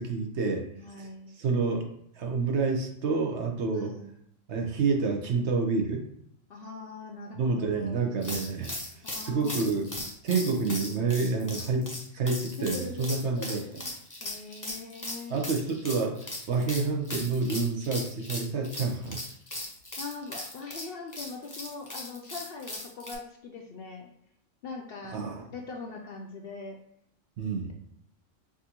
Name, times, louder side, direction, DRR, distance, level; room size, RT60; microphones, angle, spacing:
voice 1, 0.0-0.6 1.0-1.1 1.4-1.9 2.2-3.9 4.5-6.0 7.3-9.9 10.2-13.6 15.3-16.2 16.5-19.2 25.1-25.4 27.4-27.7, right 4 dB, 65° right, 2 dB, 1.0 m, -28 dB
voice 2, 0.8-1.3 3.7-4.1 6.5-8.1 9.0-10.1 12.6-15.4 20.0-24.1 24.6-26.8, left 4 dB, 60° left, 1 dB, 0.7 m, -42 dB
sound 1, 8.2-23.1, left 1 dB, 20° left, 0.7 m, -38 dB
6.0 x 2.6 x 2.9 m, 0.72 s
omnidirectional pair, 1.3 m